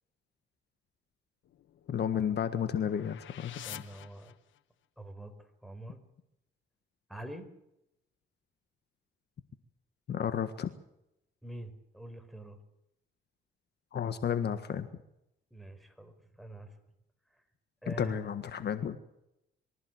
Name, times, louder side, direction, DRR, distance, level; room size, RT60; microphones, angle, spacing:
sound 1, 1.4-4.9, left 12 dB, 75° left, 1.3 m, -49 dB
voice 1, 1.9-3.5 10.1-10.7 13.9-14.9 17.9-19.0, left 8 dB, 55° left, 10 dB, 1.6 m, -32 dB
voice 2, 3.6-4.4 5.0-6.0 7.1-7.5 11.4-12.6 15.5-16.8 17.3-17.4 17.8-18.3, right 1 dB, ahead, 8 dB, 4.6 m, -45 dB
24.5 x 15.0 x 8.0 m, 0.83 s
cardioid pair, 90°, 20 cm